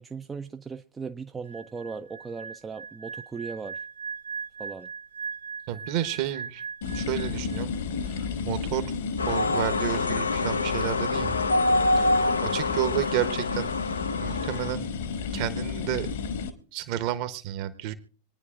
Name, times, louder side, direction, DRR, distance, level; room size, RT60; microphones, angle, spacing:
voice 1, 0.0-3.8 4.6-4.9 11.9-12.2, right 5 dB, 15° right, 0.5 m, -38 dB
sound 1, 1.4-7.8 8.1-8.4, right 5 dB, 70° right, 0.7 m, -39 dB
voice 2, 5.7-6.6 6.9-7.7 8.1-9.0 9.3-11.4 12.0-12.1 12.4-13.7 14.2-14.9 15.3-16.1 16.7-17.9, right 12 dB, 45° right, 1.2 m, -31 dB
sound 2, 6.8-16.5, left 5 dB, 60° left, 1.4 m, -32 dB
sound 3, 9.2-14.7, left 2 dB, 75° left, 0.6 m, -26 dB
25.5 x 9.9 x 2.5 m
figure-of-eight pair, 90°, 0 cm